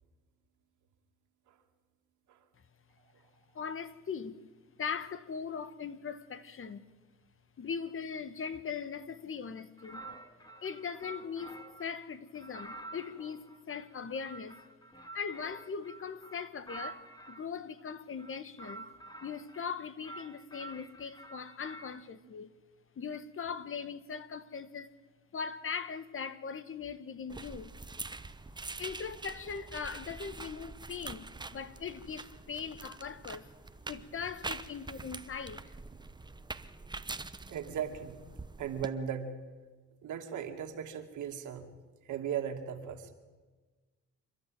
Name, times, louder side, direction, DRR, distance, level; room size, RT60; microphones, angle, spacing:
voice 1, 3.5-4.4 4.8-6.8 7.6-10.0 10.6-14.6 15.1-18.9 19.2-22.5 23.0-24.9 25.3-27.7 28.8-33.5 33.9-35.7, left 6 dB, 45° left, 1.3 m, -40 dB
sound 1, 9.8-11.9 12.4-17.5 18.1-19.7 20.0-22.0, right 2 dB, 15° left, 2.2 m, -49 dB
sound 2, 27.3-38.9, right 3 dB, 15° right, 1.0 m, -45 dB
voice 2, 37.5-38.2 38.6-39.4 40.0-41.7 42.1-43.1, right 8 dB, 80° right, 2.5 m, -37 dB
28.5 x 12.0 x 9.2 m
cardioid pair, 90°, 30 cm